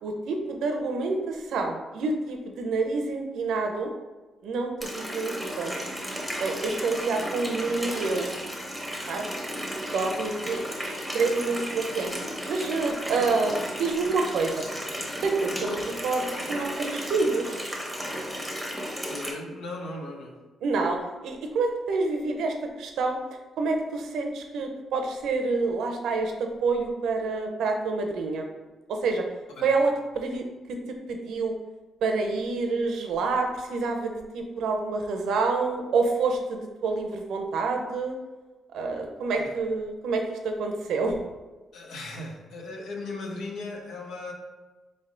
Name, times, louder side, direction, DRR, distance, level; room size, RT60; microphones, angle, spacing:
voice 1, 0.0-3.9 4.4-5.7 6.4-8.3 9.1-9.3 9.9-12.1 12.5-14.7 15.1-17.6 20.6-23.2 23.6-28.5 28.9-29.2 29.6-30.4 31.1-31.5 32.0-38.1 38.7-41.2, right 3 dB, 80° right, 4 dB, 0.6 m, -28 dB
Water tap faucet, 4.8-19.3, equal, ahead, 0.9 m, -34 dB
voice 2, 19.1-20.4 29.6-29.7 39.3-39.5 41.7-44.3, left 2 dB, 85° left, 0 dB, 0.8 m, -37 dB
3.9 x 3.4 x 3.8 m, 1.2 s
cardioid pair, 105°, 0 cm